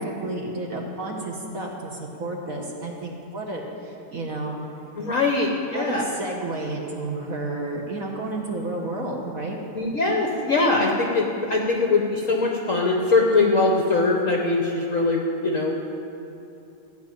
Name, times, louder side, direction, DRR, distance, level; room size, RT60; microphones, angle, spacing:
voice 1, 0.0-4.6 5.2-5.3 5.7-9.6, right 2 dB, 45° right, -1 dB, 1.4 m, -31 dB
voice 2, 5.0-6.0 9.7-15.7, left 3 dB, 50° left, 0 dB, 1.0 m, -22 dB
14.5 x 5.7 x 9.0 m, 3.0 s
omnidirectional pair, 2.4 m